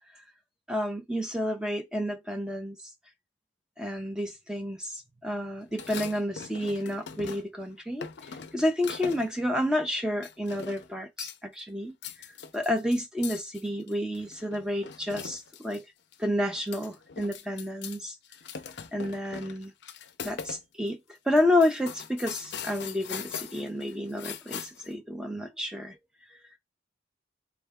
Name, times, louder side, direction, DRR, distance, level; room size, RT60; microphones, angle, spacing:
voice 1, 0.7-2.8 3.8-12.3 12.5-15.8 16.2-18.2 18.9-19.7 20.2-21.0 21.3-26.0, left 1 dB, 5° right, 0.5 m, -30 dB
sound 1, 5.7-7.6 8.0-9.4 10.2-10.9 11.2-11.6 11.9-15.8 16.1-16.2 16.5-18.0 18.2-20.6 20.9-21.0 21.4-24.9, left 7 dB, 60° left, 0.5 m, -41 dB
3.6 x 3.4 x 3.5 m
head